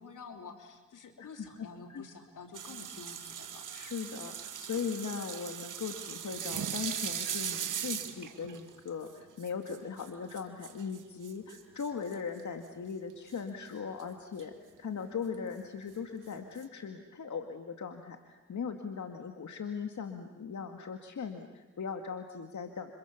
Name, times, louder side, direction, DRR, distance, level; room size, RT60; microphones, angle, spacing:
voice 1, 0.0-3.6, left 4 dB, 85° left, 5 dB, 3.3 m, -49 dB
voice 2, 1.2-2.1 3.7-22.9, left 6 dB, 70° left, 5 dB, 2.1 m, -39 dB
sound 1, 2.5-12.4 13.3-13.4 13.8-14.0 14.4-14.5 15.3-15.4 16.3-16.6, right 8 dB, 85° right, 1.9 m, -39 dB
30.0 x 26.5 x 7.2 m, 1.2 s
cardioid pair, 50°, 31 cm